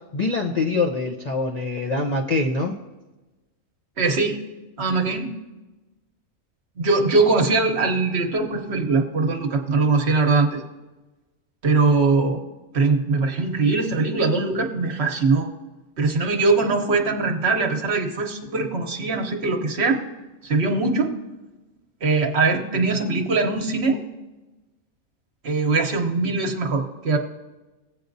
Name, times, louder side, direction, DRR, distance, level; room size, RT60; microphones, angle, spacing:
voice 1, 0.1-2.7, left 3 dB, 45° left, 0 dB, 0.5 m, -24 dB
voice 2, 4.0-4.4 4.8-5.3 6.8-10.6 11.6-12.4 12.7-15.5 16.0-20.0 20.4-21.1 22.0-24.0 25.4-27.2, right 3 dB, 55° right, 3 dB, 1.1 m, -21 dB
18.0 x 8.1 x 2.6 m, 1.1 s
omnidirectional pair, 1.4 m